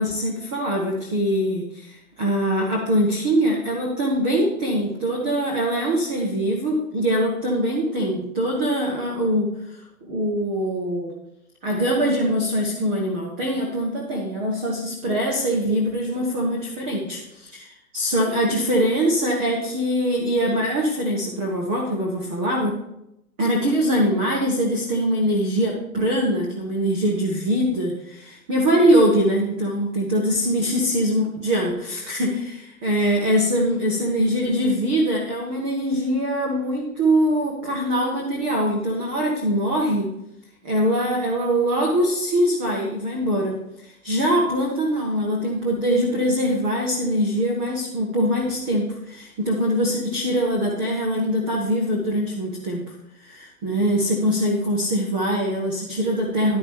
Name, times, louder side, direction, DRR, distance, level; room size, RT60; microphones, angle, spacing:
voice 1, 0.0-9.5 10.1-11.1 11.6-17.7 17.9-22.8 23.4-40.1 40.6-43.5 43.8-52.8 53.2-56.6, equal, 10° right, -2 dB, 0.3 m, -23 dB
11.0 x 9.7 x 3.4 m, 0.82 s
hypercardioid pair, 125°, 44 cm